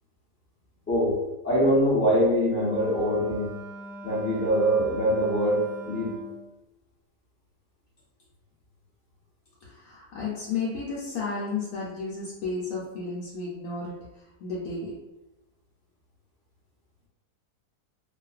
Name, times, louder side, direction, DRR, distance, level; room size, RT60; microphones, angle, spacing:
voice 1, 0.9-1.2 1.4-3.5 4.0-6.2, equal, 10° left, -8 dB, 0.6 m, -23 dB
Wind instrument woodwind instrument, 2.6-6.5, right 2 dB, 50° right, 0.7 m, -41 dB
voice 2, 9.6-15.0, left 4 dB, 75° left, -6 dB, 1.0 m, -33 dB
2.5 x 2.3 x 2.3 m, 1.0 s
omnidirectional pair, 1.7 m